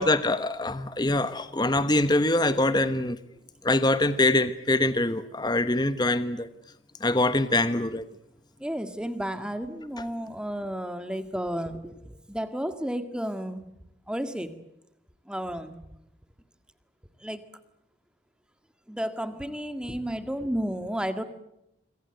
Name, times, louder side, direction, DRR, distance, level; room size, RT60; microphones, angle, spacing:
voice 1, 0.0-3.2 3.6-6.5 7.0-8.0 10.0-10.1, left 2 dB, 20° left, 12 dB, 1.0 m, -24 dB
voice 2, 8.6-13.7 14.1-14.5 15.3-15.8 17.2-17.4 18.9-21.2, equal, 5° right, 9 dB, 1.8 m, -32 dB
26.5 x 24.5 x 8.0 m, 0.83 s
head